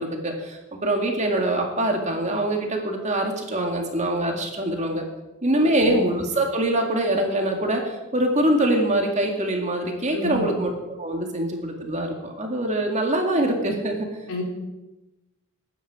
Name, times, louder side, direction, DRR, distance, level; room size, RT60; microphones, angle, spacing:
voice 1, 0.0-5.0 5.4-14.1, right 1 dB, 30° right, 2 dB, 2.1 m, -24 dB
voice 2, 10.1-10.4 14.3-14.4, left 1 dB, 65° left, 0 dB, 3.7 m, -30 dB
21.0 x 9.4 x 5.0 m, 1.0 s
head